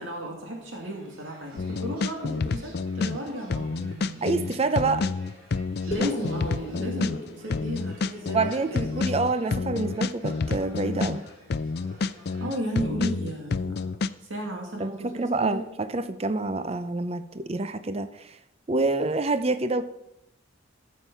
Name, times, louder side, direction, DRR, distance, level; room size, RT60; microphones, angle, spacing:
voice 1, 0.0-4.5 5.9-9.1 12.4-13.9 14.2-15.6, right 1 dB, 75° right, 0 dB, 2.3 m, -34 dB
sound 1, 0.6-12.5, right 1 dB, 45° right, 3.4 m, -51 dB
sound 2, 1.6-3.2 3.5-7.2 7.5-11.2 11.5-14.1, left 4 dB, 55° left, 0.4 m, -29 dB
voice 2, 4.2-5.0 8.3-11.2 14.8-18.4 18.7-19.8, right 3 dB, 30° right, 11 dB, 0.5 m, -27 dB
sound 3, 5.9-10.3, left 2 dB, 35° left, 1.4 m, -39 dB
14.5 x 7.3 x 5.6 m, 0.86 s
head